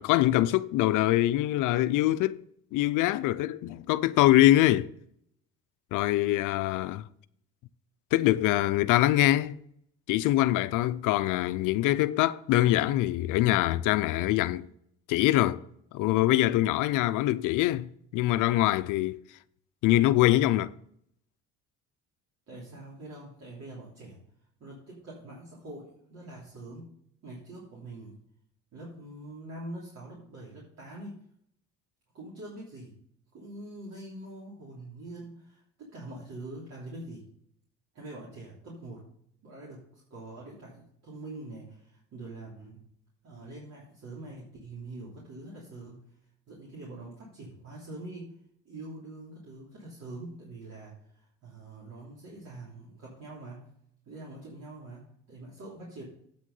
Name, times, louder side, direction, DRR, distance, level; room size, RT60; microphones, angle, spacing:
voice 1, 0.0-2.4 2.7-4.9 5.9-7.1 8.1-9.6 10.1-14.7 15.1-15.6 15.9-19.2 19.8-20.7, left 15 dB, 70° left, 0.5 m, -24 dB
voice 2, 22.5-24.2 24.6-26.9 27.2-28.2 28.7-31.2 32.1-33.0 33.3-37.3 37.9-39.1 39.4-42.9 43.2-46.0 46.5-48.3 48.6-53.7 54.0-56.0, right 2 dB, 55° right, 3.2 m, -44 dB
8.6 x 6.2 x 5.4 m
cardioid pair, 100°, 32 cm